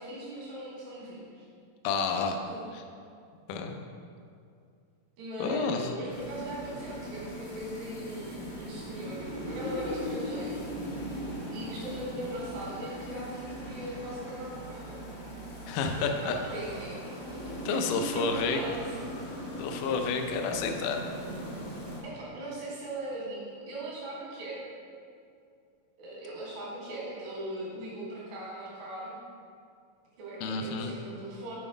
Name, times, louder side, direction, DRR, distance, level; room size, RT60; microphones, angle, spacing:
voice 1, 0.0-1.5 2.5-2.6 5.2-10.6 11.0-11.2 11.5-15.0 15.9-17.0 17.3-19.0 22.0-24.7 26.0-29.2 30.2-31.6, right 1 dB, 90° right, -6 dB, 3.5 m, -39 dB
voice 2, 1.8-2.4 3.5-3.8 5.4-5.9 15.7-16.4 17.7-18.6 19.6-21.0 30.4-30.9, left 5 dB, 80° left, 4 dB, 2.0 m, -30 dB
sound 1, 6.1-22.0, equal, 65° left, 0.9 m, -39 dB
7.8 x 4.0 x 5.1 m, 2.3 s
omnidirectional pair, 4.1 m